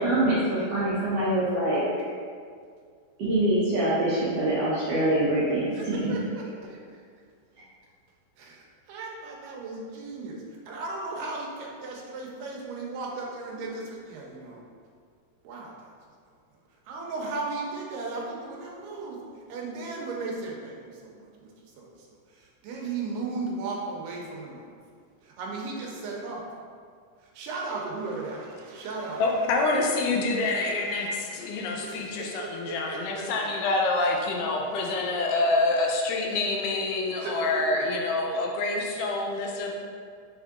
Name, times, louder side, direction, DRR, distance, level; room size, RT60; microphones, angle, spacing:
voice 1, 0.0-1.8 3.2-6.1, right 1 dB, 75° right, -10 dB, 1.5 m, -24 dB
voice 2, 5.7-7.0 8.4-14.6 15.4-15.7 16.9-19.2 19.5-24.7 25.2-26.5 27.2-29.2 30.2-33.3 35.4-35.5 37.2-37.9, right 3 dB, 90° right, -2 dB, 2.3 m, -36 dB
voice 3, 29.2-39.7, left 2 dB, 85° left, 0 dB, 2.1 m, -27 dB
6.2 x 3.6 x 2.4 m, 2.1 s
omnidirectional pair, 3.8 m